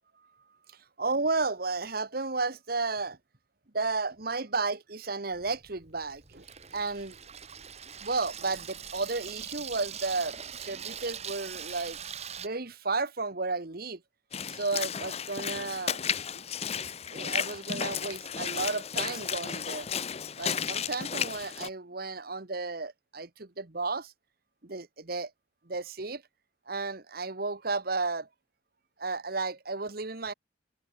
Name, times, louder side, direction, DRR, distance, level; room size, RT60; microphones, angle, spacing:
voice 1, 0.7-3.2 3.7-6.5 6.7-7.2 8.0-12.0 12.4-14.0 14.5-16.0 16.3-16.4 16.7-19.9 20.4-24.1 24.6-25.3 25.6-26.2 26.7-28.3 29.0-30.3, right 3 dB, 50° right, 1.4 m, -33 dB
Water tap faucet / Sink (filling or washing), 5.3-12.5, right 8 dB, 35° right, 2.0 m, -42 dB
Walk footsteps / Splash splatter, 14.3-21.7, left 7 dB, 30° left, 0.6 m, -33 dB
head